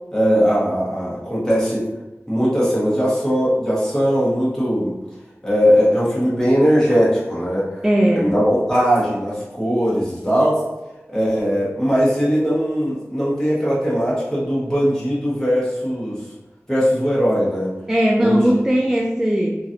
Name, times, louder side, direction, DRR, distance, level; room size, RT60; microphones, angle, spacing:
voice 1, 0.1-1.8 2.3-5.0 5.4-7.8 8.1-10.6 11.1-16.2 16.7-17.8 18.2-18.5, equal, 10° left, -8 dB, 1.3 m, -19 dB
voice 2, 7.8-8.3 17.9-19.6, equal, 10° right, 0 dB, 0.3 m, -18 dB
3.0 x 2.5 x 2.7 m, 1.0 s
wide cardioid pair, 50°, 5 cm